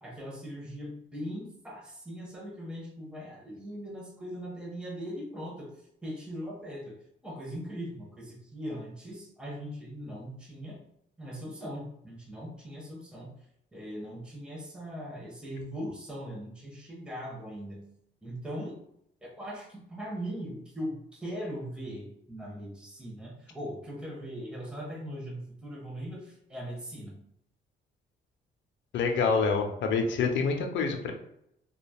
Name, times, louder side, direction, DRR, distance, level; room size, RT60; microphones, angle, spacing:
voice 1, 0.0-5.7 6.0-7.0 7.2-10.8 11.2-13.3 13.7-17.8 18.2-18.8 19.2-27.2, equal, 5° right, -3 dB, 0.9 m, -40 dB
voice 2, 28.9-31.1, left 5 dB, 70° left, 4 dB, 0.5 m, -27 dB
3.2 x 2.3 x 2.3 m, 0.76 s
cardioid pair, 90°, 20 cm